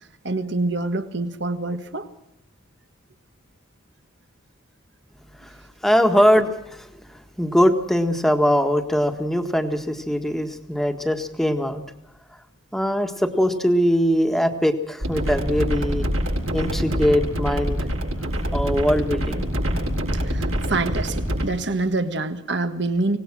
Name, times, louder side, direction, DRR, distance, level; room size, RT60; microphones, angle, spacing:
voice 1, 0.2-2.1 20.2-23.2, right 2 dB, 55° right, 9 dB, 1.6 m, -26 dB
voice 2, 5.8-11.8 12.7-16.1 16.5-17.8 18.5-19.4, equal, ahead, 6 dB, 1.7 m, -21 dB
sound 1, 15.0-21.4, equal, 85° right, 7.6 m, -25 dB
25.0 x 19.0 x 6.2 m, 0.79 s
head